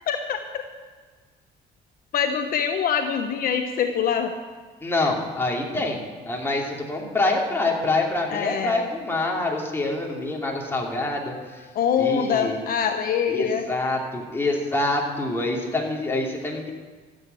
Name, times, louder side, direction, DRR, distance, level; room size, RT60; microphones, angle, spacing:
voice 1, 0.1-0.6 2.1-4.3 8.3-8.8 11.7-13.7, left 7 dB, 60° left, 6 dB, 1.0 m, -24 dB
voice 2, 4.8-11.6 12.0-12.6 13.3-16.7, left 2 dB, 15° left, -2 dB, 2.9 m, -26 dB
13.5 x 8.1 x 8.2 m, 1.5 s
cardioid pair, 110°, 17 cm